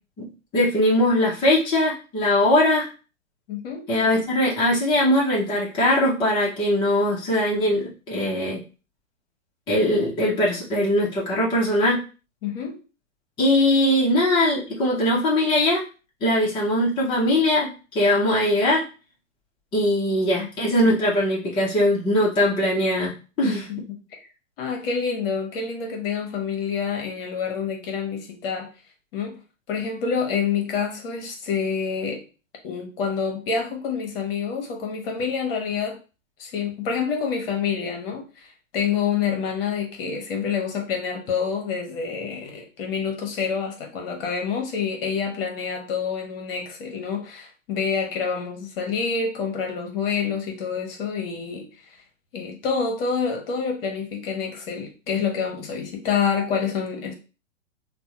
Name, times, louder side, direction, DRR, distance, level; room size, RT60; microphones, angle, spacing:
voice 1, 0.5-2.9 3.9-8.6 9.7-12.0 13.4-15.8 16.2-18.8 19.7-23.1 23.4-23.7, left 1 dB, 10° left, -6 dB, 0.6 m, -21 dB
voice 2, 3.5-3.9 12.4-12.8 20.4-20.5 23.4-24.2 24.6-28.7 29.1-29.4 29.7-32.2 32.6-36.0 36.4-51.7 52.3-57.1, left 6 dB, 45° left, 2 dB, 1.0 m, -27 dB
3.4 x 2.1 x 2.8 m, 0.34 s
hypercardioid pair, 120°, 40 cm